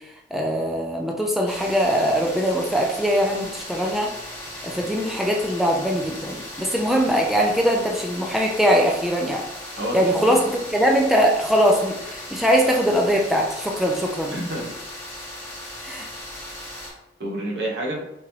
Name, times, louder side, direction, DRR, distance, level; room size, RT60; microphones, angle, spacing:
voice 1, 0.3-4.1 4.6-9.4 9.9-14.3 15.8-16.1, equal, ahead, 0 dB, 0.3 m, -21 dB
sound 1, 1.5-16.9, left 1 dB, 15° left, 1.1 m, -37 dB
voice 2, 9.8-10.5 14.2-14.8 17.2-18.0, right 1 dB, 70° right, -3 dB, 1.0 m, -29 dB
3.7 x 2.9 x 3.0 m, 0.87 s
head